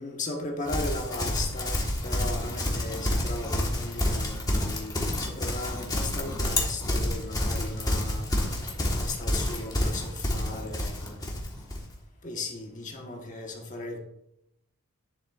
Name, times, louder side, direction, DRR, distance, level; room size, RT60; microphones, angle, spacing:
voice 1, 0.0-8.3 8.8-11.4 12.2-14.0, left 2 dB, 35° left, 1 dB, 1.3 m, -37 dB
Livestock farm animals working animals, 0.7-11.9, left 1 dB, 15° left, 1.4 m, -29 dB
10.0 x 7.3 x 2.5 m, 0.79 s
head